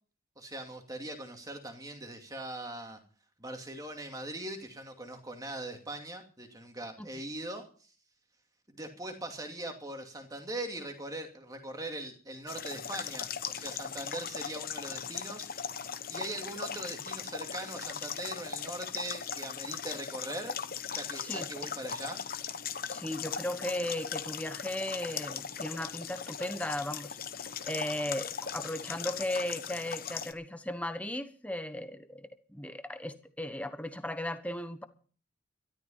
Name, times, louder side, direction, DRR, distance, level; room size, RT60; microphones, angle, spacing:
voice 1, 0.4-3.0 3.4-7.9 8.7-15.5 16.1-20.6 20.9-22.2, right 1 dB, 15° right, 2.5 m, -41 dB
sound 1, 12.5-30.3, left 7 dB, 45° left, 1.0 m, -39 dB
voice 2, 21.1-21.5 22.9-34.8, left 1 dB, 5° left, 1.2 m, -36 dB
13.5 x 13.0 x 5.7 m
head